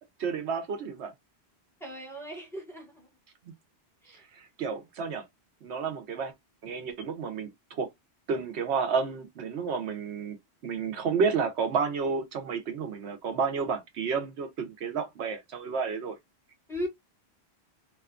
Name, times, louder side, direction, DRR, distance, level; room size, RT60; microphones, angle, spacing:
voice 1, 0.2-1.1 4.3-5.3 5.6-6.3 6.6-7.9 8.3-10.4 10.6-16.2, right 5 dB, 90° right, 1.0 m, -31 dB
voice 2, 1.8-3.1 4.0-4.2 16.7-16.9, equal, ahead, 1.2 m, -37 dB
2.8 x 2.3 x 2.3 m
omnidirectional pair, 1.1 m